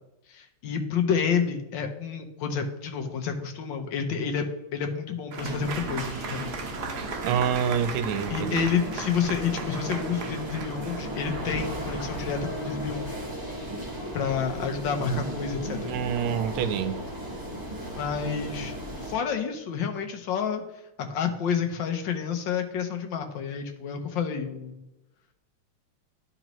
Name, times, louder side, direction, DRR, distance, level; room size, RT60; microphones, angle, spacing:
voice 1, 0.3-6.5 8.3-13.2 14.1-15.9 18.0-18.8 19.0-20.6 21.1-24.8, left 6 dB, 70° left, 1.4 m, -29 dB
Applause / Crowd, 5.3-12.1, right 5 dB, 65° right, 1.0 m, -38 dB
sound 1, 5.4-19.1, right 1 dB, 10° right, 1.2 m, -36 dB
voice 2, 7.2-8.7 15.8-17.0, right 8 dB, 85° right, 1.5 m, -27 dB
12.0 x 4.0 x 3.0 m
omnidirectional pair, 2.3 m